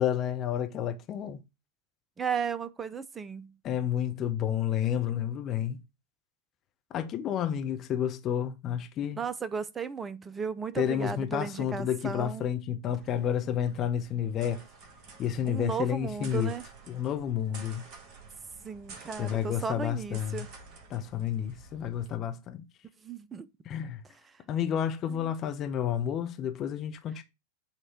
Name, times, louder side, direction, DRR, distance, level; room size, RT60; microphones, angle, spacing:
voice 1, 0.0-1.4 3.6-5.8 6.9-9.2 10.8-14.6 15.2-16.5 16.9-17.8 19.2-20.4 20.9-22.6 23.7-24.0 24.5-27.2, left 9 dB, 30° left, 1.0 m, -30 dB
voice 2, 2.2-3.6 9.2-12.5 15.4-16.7 18.6-20.5 23.0-23.5 24.1-24.4 25.1-25.3, right 6 dB, 15° right, 0.7 m, -35 dB
sound 1, 12.9-22.2, right 4 dB, 35° right, 1.4 m, -51 dB
8.8 x 3.2 x 4.4 m
figure-of-eight pair, 90°, 0 cm